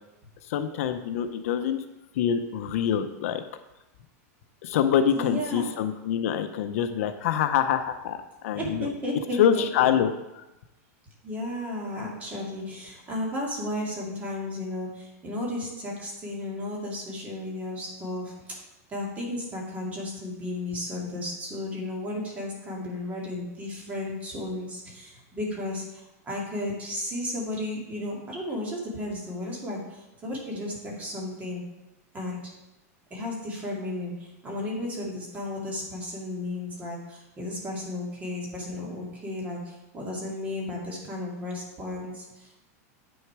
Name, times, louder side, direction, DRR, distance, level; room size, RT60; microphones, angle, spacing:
voice 1, 0.5-1.8 2.2-3.4 4.6-8.2 8.4-8.9 9.4-10.1 10.3-10.4, left 9 dB, 60° left, 8 dB, 0.6 m, -25 dB
voice 2, 5.1-5.7 8.6-9.9 11.2-18.3 18.9-31.6 32.1-32.5 33.1-42.6, left 1 dB, 15° right, -3 dB, 2.3 m, -34 dB
8.8 x 6.3 x 4.7 m, 0.95 s
supercardioid pair, 160°, 9 cm